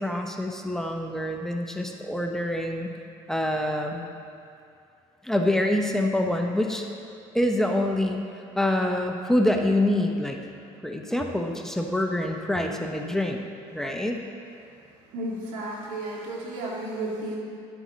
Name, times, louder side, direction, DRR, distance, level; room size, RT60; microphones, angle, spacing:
voice 1, 0.0-2.9 3.3-4.1 5.2-6.9 7.3-8.2 8.6-10.4 10.8-13.4 13.7-14.2, left 1 dB, 5° left, 2 dB, 0.6 m, -26 dB
voice 2, 15.1-17.4, right 1 dB, 90° right, -3 dB, 1.9 m, -33 dB
11.5 x 8.0 x 3.1 m, 2.5 s
cardioid pair, 110°, 12 cm